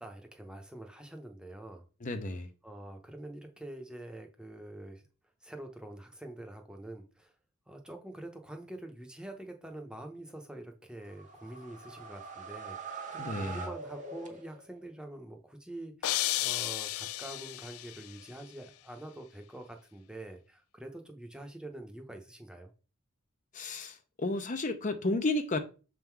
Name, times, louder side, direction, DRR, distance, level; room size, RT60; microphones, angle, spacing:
voice 1, 0.0-1.8 2.6-5.0 5.4-7.3 7.7-22.7, right 1 dB, 5° right, 0.8 m, -46 dB
voice 2, 2.0-2.5 13.2-13.6 23.5-25.6, left 2 dB, 35° left, 0.6 m, -32 dB
sound 1, 11.0-14.8, right 5 dB, 35° right, 1.1 m, -43 dB
sound 2, 16.0-18.1, left 15 dB, 90° left, 0.4 m, -33 dB
6.6 x 3.7 x 4.6 m
head